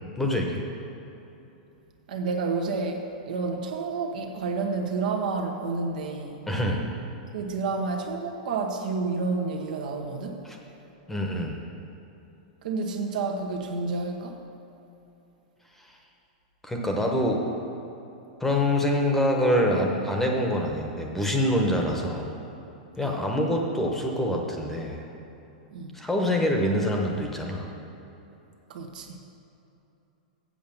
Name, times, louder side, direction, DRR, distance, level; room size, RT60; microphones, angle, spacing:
voice 1, 0.2-0.6 6.5-6.8 10.4-10.6 11.1-11.6 16.6-17.4 18.4-22.3 23.0-25.0 25.9-27.7, left 1 dB, 5° left, 1 dB, 1.0 m, -25 dB
voice 2, 2.1-6.5 7.3-10.4 12.6-14.4 23.0-23.2 25.7-26.0 28.7-29.2, right 4 dB, 75° right, 3 dB, 1.2 m, -30 dB
7.7 x 6.8 x 7.1 m, 3.0 s
supercardioid pair, 145°, 4 cm